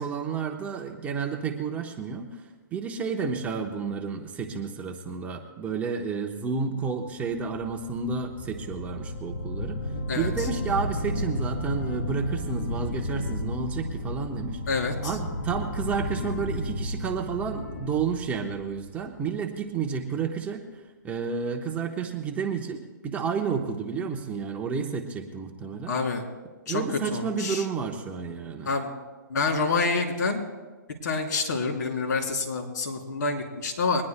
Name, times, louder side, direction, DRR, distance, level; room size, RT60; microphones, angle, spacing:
voice 1, 0.0-2.5 2.7-9.8 10.1-14.6 15.0-20.6 21.0-26.0 26.7-28.7, right 5 dB, 15° right, 3 dB, 0.9 m, -31 dB
sound 1, 7.3-19.4, left 1 dB, 85° left, 4.3 m, -33 dB
voice 2, 25.9-26.2 26.7-26.8 27.1-27.6 28.6-28.9 29.3-30.4 31.0-34.0, left 4 dB, 65° left, 2 dB, 3.3 m, -27 dB
22.5 x 19.5 x 2.2 m, 1.3 s
hypercardioid pair, 150°, 11 cm